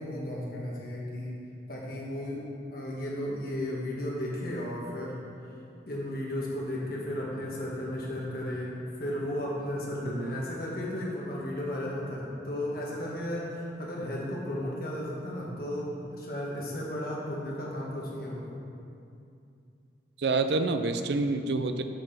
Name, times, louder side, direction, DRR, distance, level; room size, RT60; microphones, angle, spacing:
voice 1, 0.0-1.3 1.7-2.4 2.7-5.2 5.9-18.6, left 1 dB, 50° left, -4 dB, 1.7 m, -34 dB
voice 2, 10.0-10.4 20.2-21.8, right 3 dB, 65° right, 8 dB, 0.5 m, -28 dB
6.6 x 6.0 x 5.8 m, 2.5 s
head